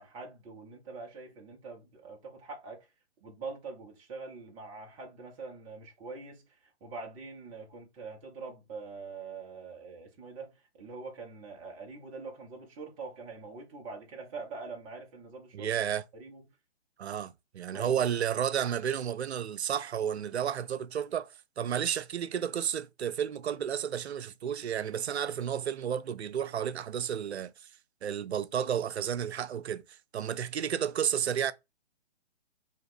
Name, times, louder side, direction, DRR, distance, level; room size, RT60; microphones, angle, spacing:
voice 1, 0.0-2.9 3.2-15.7 16.1-16.4 17.7-18.0, right 4 dB, 15° right, 0.6 m, -44 dB
voice 2, 15.5-16.0 17.0-27.5 28.0-29.8 30.1-31.5, right 9 dB, 75° right, 0.5 m, -32 dB
2.9 x 2.9 x 4.3 m
figure-of-eight pair, 130°, 33 cm